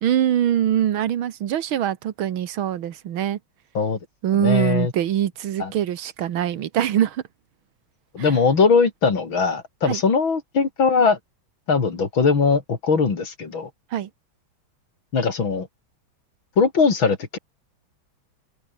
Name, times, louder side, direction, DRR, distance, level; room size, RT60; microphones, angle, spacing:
voice 1, 0.0-3.4 4.2-7.2 8.2-8.3 9.9-10.0 13.9-14.1, right 10 dB, 80° right, 2.1 m, -23 dB
voice 2, 4.4-4.9 5.6-5.7 8.1-11.2 11.7-13.7 15.1-15.7 16.6-17.4, left 5 dB, 70° left, 3.9 m, -20 dB
open air
omnidirectional pair, 2.2 m